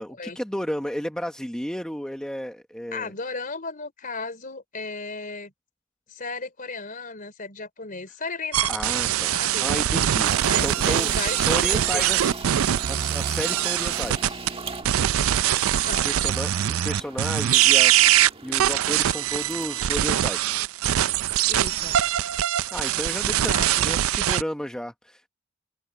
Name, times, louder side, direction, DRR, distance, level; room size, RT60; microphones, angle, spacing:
voice 1, 0.0-3.1 8.7-10.3 10.6-12.4 12.9-14.4 16.0-20.6 22.7-25.3, equal, 5° left, 1.0 m, -33 dB
voice 2, 2.9-5.5 6.1-8.8 9.3-9.7 10.4-12.2 15.7-16.1 16.6-16.9 21.5-22.0 23.3-23.9, left 3 dB, 40° left, 4.1 m, -35 dB
sound 1, 8.5-14.5 14.9-24.4, right 11 dB, 80° right, 0.4 m, -22 dB
sound 2, 10.2-19.9, right 4 dB, 25° right, 1.6 m, -39 dB
head